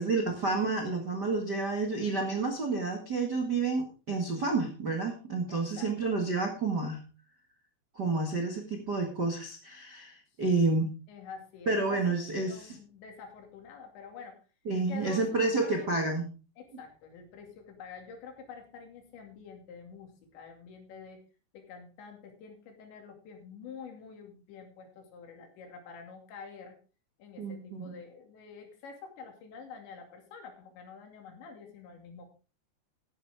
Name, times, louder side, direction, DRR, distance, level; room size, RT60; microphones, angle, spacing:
voice 1, 0.0-7.0 7.9-10.9 11.6-12.8 14.6-16.3 27.4-28.0, right 3 dB, 50° right, 2 dB, 1.2 m, -30 dB
voice 2, 5.5-6.2 10.5-10.7 11.1-12.2 12.4-14.4 14.9-15.9 16.6-21.2 21.5-26.8 27.2-32.3, left 5 dB, 80° left, 4 dB, 4.8 m, -47 dB
14.0 x 11.0 x 3.6 m, 0.34 s
omnidirectional pair, 5.0 m